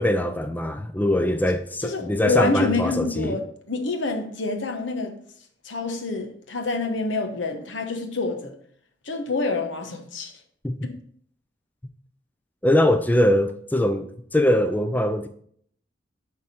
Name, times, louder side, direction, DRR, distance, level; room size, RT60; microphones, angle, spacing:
voice 1, 0.0-3.4 10.6-10.9 12.6-15.3, left 1 dB, 10° left, 0.3 m, -22 dB
voice 2, 1.8-5.1 5.6-8.6 9.0-10.3 10.8-11.0, left 3 dB, 85° left, 1.1 m, -27 dB
10.5 x 3.7 x 4.2 m
head